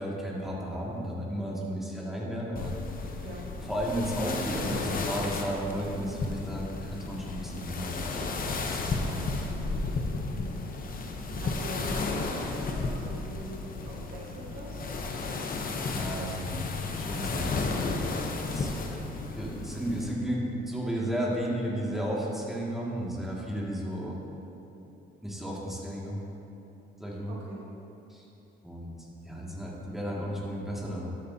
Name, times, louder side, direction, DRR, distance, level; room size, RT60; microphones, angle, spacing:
voice 1, 0.0-3.3 3.6-9.5 15.9-16.6 17.0-18.1 18.5-24.2 25.2-26.2 27.0-27.4 28.1-28.3 28.6-31.1, equal, ahead, -5 dB, 2.2 m, -34 dB
sound 1, 2.6-20.1, left 3 dB, 45° left, 0.9 m, -33 dB
voice 2, 10.1-10.5 11.2-14.8 27.3-27.6, right 1 dB, 80° right, -4 dB, 1.6 m, -42 dB
12.5 x 8.4 x 2.9 m, 2.9 s
cardioid pair, 90°, 20 cm